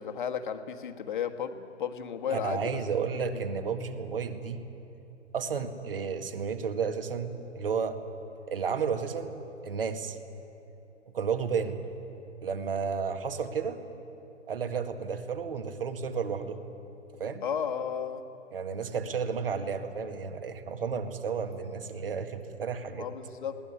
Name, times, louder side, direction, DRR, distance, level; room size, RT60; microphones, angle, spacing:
voice 1, 0.0-2.8 3.3-3.4 17.4-18.2 22.9-23.6, left 7 dB, 40° left, 5 dB, 1.5 m, -33 dB
voice 2, 2.3-4.6 5.3-8.0 8.5-10.2 11.1-11.8 12.4-13.8 14.5-16.6 17.2-17.4 18.5-23.1, right 6 dB, 50° right, 7 dB, 1.9 m, -32 dB
20.5 x 18.0 x 9.6 m, 2.9 s
figure-of-eight pair, 130°, 36 cm